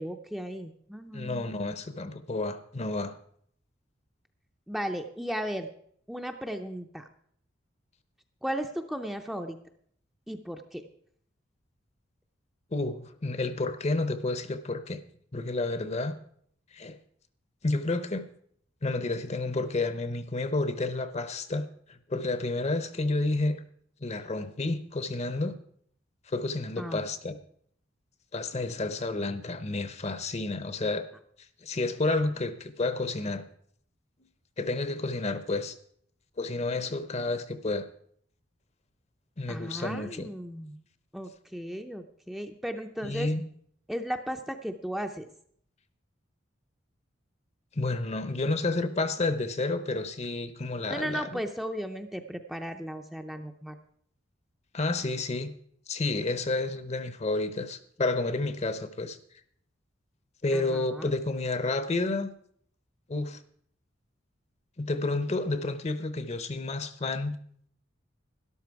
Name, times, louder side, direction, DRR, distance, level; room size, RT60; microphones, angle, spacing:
voice 1, 0.0-1.5 4.7-5.7 6.1-7.1 8.4-9.6 10.3-10.9 26.8-27.0 39.5-40.8 41.1-43.3 43.9-45.3 50.9-53.8 60.5-61.1, equal, ahead, 4 dB, 0.6 m, -35 dB
voice 2, 1.1-3.2 12.7-15.0 15.3-16.2 16.7-17.0 17.6-18.3 18.8-23.6 24.0-25.6 26.3-27.4 28.3-31.1 31.6-33.4 34.6-35.8 36.4-37.9 39.4-40.3 43.0-43.4 47.7-51.4 54.7-55.5 55.9-59.2 60.4-62.3 63.1-63.4 64.8-67.3, left 2 dB, 35° left, 12 dB, 0.7 m, -30 dB
12.5 x 11.0 x 4.7 m, 0.64 s
head